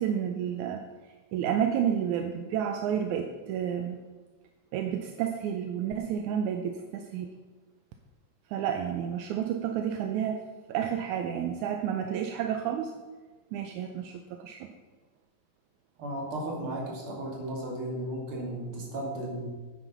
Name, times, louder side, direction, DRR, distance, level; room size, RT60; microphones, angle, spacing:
voice 1, 0.0-4.0 4.7-7.3 8.5-10.4 10.7-12.9 13.5-14.7, right 9 dB, 80° right, 5 dB, 2.0 m, -30 dB
voice 2, 16.0-19.5, right 1 dB, 45° right, -2 dB, 3.2 m, -35 dB
9.4 x 9.2 x 5.6 m, 1.3 s
omnidirectional pair, 3.7 m